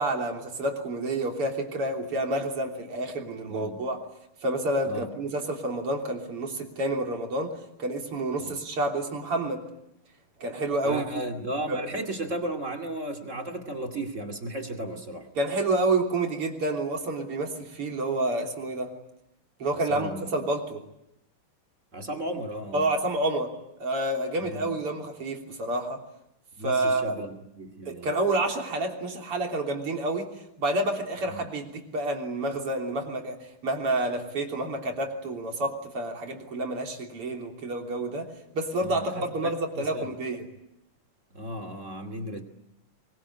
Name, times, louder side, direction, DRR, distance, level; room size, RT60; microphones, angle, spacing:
voice 1, 0.0-4.0 4.4-7.5 7.8-9.6 10.4-11.2 11.7-11.8 15.4-18.9 19.6-20.8 22.7-23.5 23.8-26.0 26.6-27.2 27.9-30.3 30.6-33.4 33.6-40.4, right 2 dB, 85° right, 2 dB, 4.3 m, -29 dB
voice 2, 3.5-3.8 4.9-5.1 8.4-8.5 10.8-15.3 19.7-20.3 21.9-22.9 24.4-24.8 26.6-28.1 31.3-31.5 38.8-40.1 41.3-42.4, right 1 dB, 35° right, 5 dB, 2.8 m, -35 dB
24.0 x 23.0 x 9.9 m, 0.83 s
omnidirectional pair, 2.4 m